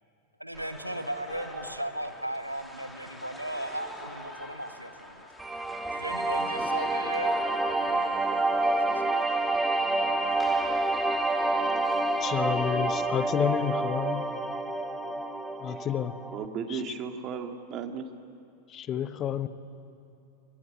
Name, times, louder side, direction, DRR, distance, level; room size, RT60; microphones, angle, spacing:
voice 1, 0.4-5.3 5.9-8.1 8.6-8.8, right 1 dB, 90° right, 9 dB, 1.3 m, -37 dB
sound 1, 0.5-12.4, left 1 dB, 5° left, 2.8 m, -46 dB
sound 2, 5.4-16.5, right 2 dB, 10° right, 1.8 m, -28 dB
voice 2, 12.2-14.3 15.6-16.2 16.7-17.0 18.7-19.5, left 10 dB, 30° left, 14 dB, 1.0 m, -30 dB
voice 3, 16.3-18.0, right 6 dB, 35° right, 6 dB, 2.0 m, -35 dB
24.0 x 19.0 x 9.6 m, 2.7 s
figure-of-eight pair, 90°, 0 cm